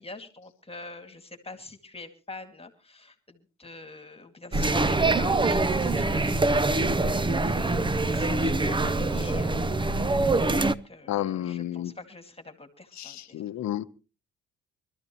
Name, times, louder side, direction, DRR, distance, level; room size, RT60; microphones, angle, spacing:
voice 1, 0.0-10.2 10.6-13.4, left 3 dB, 20° left, 2.1 m, -45 dB
sound 1, 4.5-10.7, right 2 dB, 15° right, 0.6 m, -24 dB
voice 2, 11.1-11.9 13.0-13.8, left 12 dB, 65° left, 0.9 m, -31 dB
24.0 x 13.0 x 3.0 m
cardioid pair, 90°, 30 cm